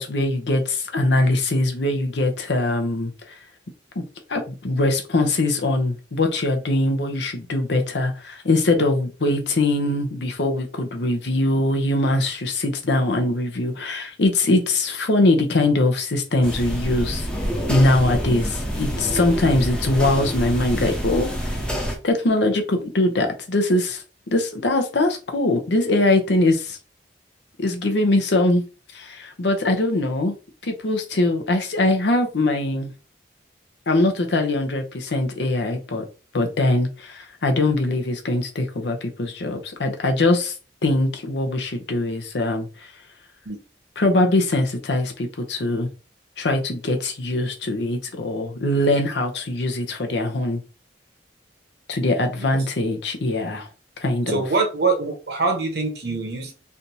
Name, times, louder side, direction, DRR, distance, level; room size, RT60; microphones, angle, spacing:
voice 1, 0.0-3.4 4.0-4.1 4.3-17.3 17.7-21.3 22.0-24.0 24.3-26.8 27.6-28.6 28.9-30.3 30.6-32.9 33.9-36.0 36.3-40.5 40.8-42.9 44.0-45.9 46.4-50.6 51.9-53.7 54.0-54.4, left 2 dB, 75° left, 0.7 m, -22 dB
Ticking museum exhibit, 16.4-22.0, equal, 5° left, 0.7 m, -27 dB
voice 2, 54.3-56.5, right 3 dB, 65° right, 1.0 m, -24 dB
3.4 x 2.6 x 2.8 m
head